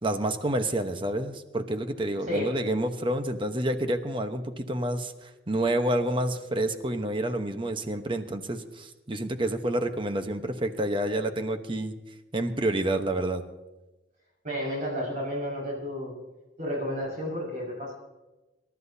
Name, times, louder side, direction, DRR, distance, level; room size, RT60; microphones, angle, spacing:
voice 1, 0.0-11.9 12.3-13.4, right 1 dB, 30° right, 7 dB, 1.0 m, -28 dB
voice 2, 14.4-16.2 16.6-18.0, equal, 50° right, -3 dB, 5.6 m, -31 dB
27.0 x 13.0 x 2.8 m, 1.1 s
head